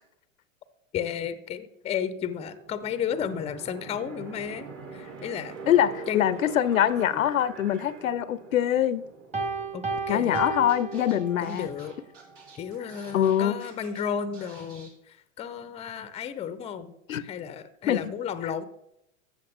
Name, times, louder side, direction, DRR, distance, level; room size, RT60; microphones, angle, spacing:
voice 1, 0.9-5.5 6.1-6.3 7.1-7.2 9.7-10.5 11.4-11.9 12.5-16.9 17.2-18.6, left 8 dB, 15° left, 0.6 m, -33 dB
sound 1, 2.6-13.3, right 4 dB, 40° right, 2.0 m, -45 dB
voice 2, 5.7-9.1 10.1-11.7 13.1-13.6 17.1-17.2 17.9-18.1, left 10 dB, 80° left, 0.6 m, -24 dB
Piano, 9.3-11.7, right 4 dB, 15° right, 1.4 m, -32 dB
Scratching (performance technique), 10.3-10.4 10.7-14.0 14.3-14.9, right 4 dB, 60° right, 3.5 m, -51 dB
13.0 x 7.9 x 3.5 m
hypercardioid pair, 100°, 40 cm